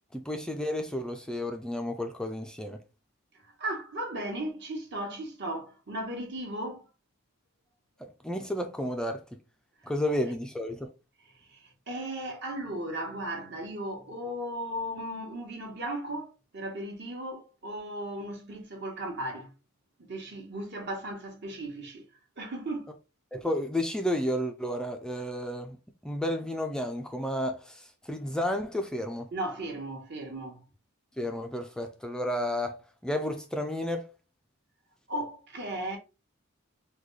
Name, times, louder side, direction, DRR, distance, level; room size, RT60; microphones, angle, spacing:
voice 1, 0.1-2.8 8.0-9.4 9.8-10.9 23.3-25.8 26.0-29.3 31.2-34.1, left 1 dB, 5° left, 0.3 m, -32 dB
voice 2, 3.6-6.8 11.3-19.5 20.0-22.0 22.4-22.9 29.3-30.6 35.1-36.0, right 1 dB, 55° right, 1.0 m, -36 dB
3.8 x 2.3 x 3.1 m
head